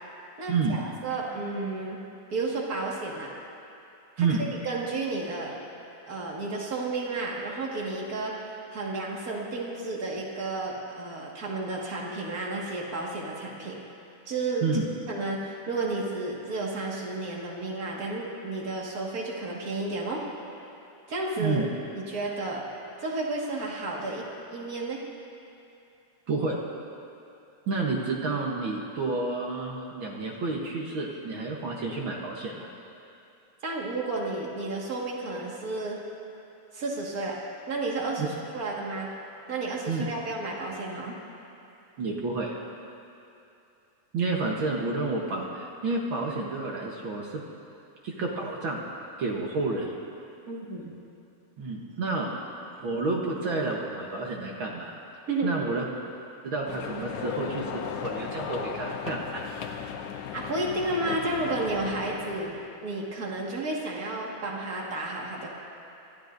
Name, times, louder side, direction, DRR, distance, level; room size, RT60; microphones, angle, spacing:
voice 1, 0.4-2.0 2.3-3.3 4.2-5.5 6.1-13.8 14.3-14.7 15.1-20.2 21.1-21.7 21.9-22.6 23.0-24.2 24.5-25.0 33.6-36.0 36.7-37.4 37.7-39.1 39.5-41.1 50.5-50.9 55.3-55.5 60.3-62.5 62.8-65.5, right 2 dB, 35° right, -3 dB, 1.8 m, -32 dB
voice 2, 27.7-32.7 38.2-38.3 39.9-40.0 42.0-42.6 44.1-47.4 48.0-48.8 49.2-49.9 51.6-52.3 52.8-54.9 55.4-55.8 56.4-59.4, right 3 dB, 60° right, -1 dB, 1.4 m, -30 dB
sound 1, 56.7-62.7, left 7 dB, 75° left, 2.1 m, -36 dB
26.0 x 13.5 x 2.6 m, 2.7 s
omnidirectional pair, 3.4 m